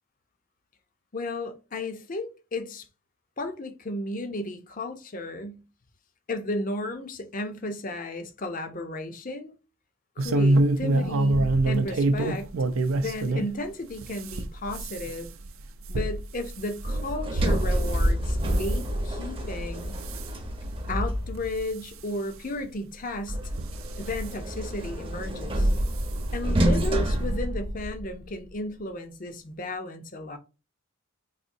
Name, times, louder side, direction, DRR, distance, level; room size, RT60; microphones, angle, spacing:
voice 1, 1.1-2.9 3.4-5.6 6.3-9.5 10.2-12.5 12.9-15.3 15.9-20.0 20.9-23.4 24.0-25.7 26.3-30.4, left 1 dB, 40° left, 0.6 m, -34 dB
sound 1, 10.2-13.5 13.9-18.1 18.5-18.8 19.4-19.7 20.0-20.3 20.9-21.0 21.4-21.5 22.6-22.7 23.5-24.3 25.4-25.6 26.0-26.1 26.4-26.5, right 2 dB, 75° right, 0.5 m, -26 dB
Sliding door, 16.8-21.7 23.3-28.2, right 1 dB, 25° right, 0.7 m, -28 dB
4.1 x 2.7 x 2.6 m
head